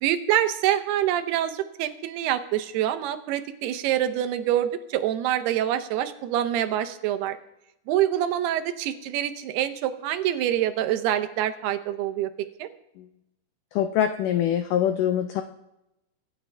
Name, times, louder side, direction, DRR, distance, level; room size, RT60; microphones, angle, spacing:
voice 1, 0.0-7.4 7.9-12.3 12.6-12.7, right 11 dB, 90° right, 9 dB, 2.8 m, -26 dB
voice 2, 13.8-15.4, left 10 dB, 90° left, 8 dB, 1.8 m, -24 dB
24.0 x 9.4 x 3.4 m, 0.89 s
omnidirectional pair, 4.5 m